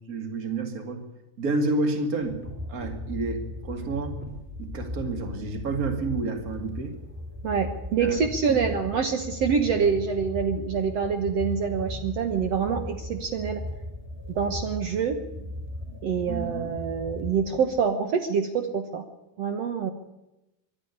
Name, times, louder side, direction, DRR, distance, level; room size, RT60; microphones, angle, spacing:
voice 1, 0.1-1.1 1.4-2.4 2.7-4.2 4.6-6.9 8.0-8.2 8.5-8.6 9.7-9.9 16.3-16.8, right 3 dB, 30° right, 6 dB, 1.8 m, -30 dB
sound 1, 2.2-17.9, left 1 dB, 5° right, 3.6 m, -37 dB
voice 2, 7.4-13.6 14.3-15.2 16.0-19.0 19.4-19.9, right 6 dB, 70° right, 7 dB, 1.5 m, -26 dB
23.5 x 11.5 x 10.0 m, 0.95 s
omnidirectional pair, 4.6 m